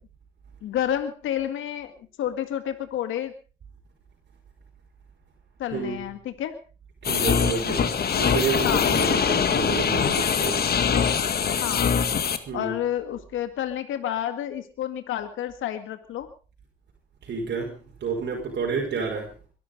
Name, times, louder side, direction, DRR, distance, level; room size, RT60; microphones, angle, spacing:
voice 1, 0.6-1.9 2.2-3.3 5.6-6.6 8.6-9.0 11.6-12.0 12.5-16.3, left 11 dB, 80° left, 9 dB, 2.0 m, -30 dB
voice 2, 5.7-6.0 7.0-10.7 12.5-12.8 17.2-19.3, right 5 dB, 60° right, 0 dB, 5.2 m, -30 dB
sound 1, 7.0-12.4, left 7 dB, 50° left, 2.0 m, -23 dB
22.5 x 12.0 x 5.3 m, 0.38 s
cardioid pair, 90°, 20 cm